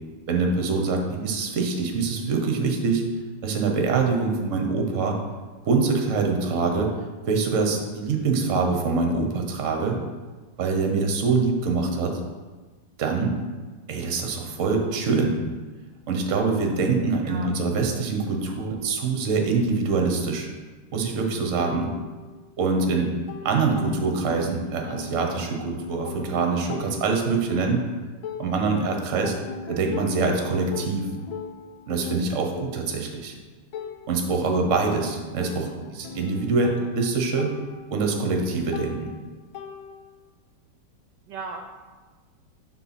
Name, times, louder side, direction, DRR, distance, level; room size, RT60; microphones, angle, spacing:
voice 1, 0.3-3.0 3.4-5.2 5.7-6.9 7.3-10.0 10.6-12.2 13.0-13.3 13.9-15.3 16.1-20.5 20.9-21.9 22.6-23.1 23.4-27.8 28.4-29.3 29.7-31.0 31.9-33.3 34.1-37.5 37.9-39.1, right 4 dB, 50° right, 3 dB, 1.1 m, -24 dB
sound 1, 21.6-22.7 23.0-24.5 24.9-28.9 29.2-40.3, left 6 dB, 80° left, 1.4 m, -40 dB
voice 2, 41.3-41.6, right 5 dB, 75° right, 3 dB, 1.1 m, -37 dB
6.7 x 4.0 x 5.9 m, 1.3 s
omnidirectional pair, 2.2 m